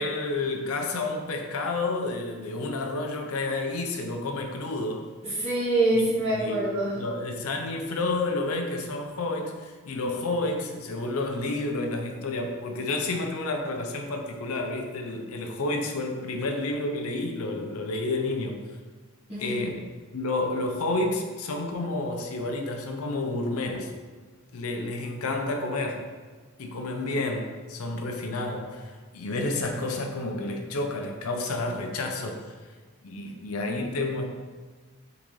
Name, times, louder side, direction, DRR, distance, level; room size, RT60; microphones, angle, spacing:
voice 1, 0.0-5.1 5.9-6.0 6.3-6.6 6.9-18.6 19.4-19.8 20.1-23.9 24.5-26.0 26.6-32.4 33.0-34.2, left 2 dB, 75° left, 3 dB, 0.6 m, -30 dB
voice 2, 5.2-7.0 19.3-19.6, right 2 dB, 25° right, -12 dB, 1.4 m, -25 dB
3.8 x 3.8 x 3.1 m, 1.4 s
head